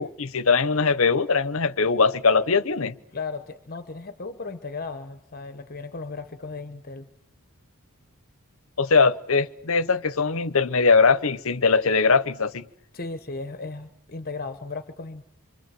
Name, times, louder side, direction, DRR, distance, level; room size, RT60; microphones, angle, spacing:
voice 1, 0.0-2.9 8.8-12.7, left 4 dB, 65° left, 0.9 m, -21 dB
voice 2, 3.1-7.1 12.9-15.2, left 3 dB, 40° left, 1.1 m, -36 dB
25.5 x 25.0 x 7.6 m
head